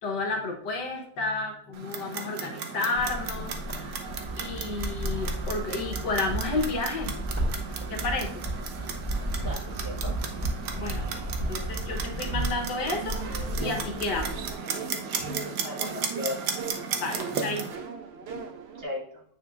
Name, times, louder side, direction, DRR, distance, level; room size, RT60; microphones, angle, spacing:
voice 1, 0.0-4.1 4.4-7.1 7.9-8.3 10.8-11.2 11.5-14.4 15.2-15.5 17.0-17.7, left 3 dB, 75° left, 2 dB, 1.8 m, -31 dB
Clock, 1.7-17.8, right 6 dB, 75° right, 1.4 m, -36 dB
sound 1, 2.9-14.5, right 1 dB, 5° right, 2.4 m, -33 dB
voice 2, 9.4-10.2 15.6-16.5 18.7-19.2, left 2 dB, 40° right, -2 dB, 1.3 m, -36 dB
sound 2, 12.8-18.8, right 5 dB, 55° right, 0.7 m, -39 dB
9.0 x 5.0 x 2.5 m, 0.69 s
omnidirectional pair, 1.9 m